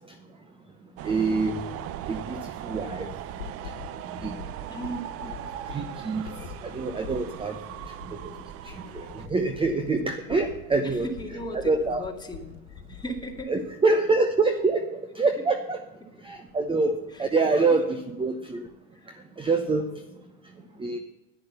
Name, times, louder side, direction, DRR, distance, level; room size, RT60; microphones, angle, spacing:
voice 1, 1.0-1.7 2.1-3.1 4.2-4.4 5.2-5.3 5.7-7.6 7.9-8.2 8.6-11.1 11.5-12.0 13.5-15.8 16.2-18.7 19.4-20.0 20.8-21.0, right 3 dB, 15° right, 7 dB, 0.9 m, -26 dB
sound 1, 1.0-9.3, right 12 dB, 35° right, 0.6 m, -39 dB
sound 2, 2.7-13.5, left 11 dB, 75° left, 1.4 m, -45 dB
voice 2, 4.7-5.1 8.3-8.4 10.8-12.6 12.9-13.6 17.1-17.2 18.9-19.1 20.7-20.9, equal, 10° left, 2 dB, 2.2 m, -37 dB
10.5 x 10.5 x 6.8 m, 1.0 s
hypercardioid pair, 105°, 39 cm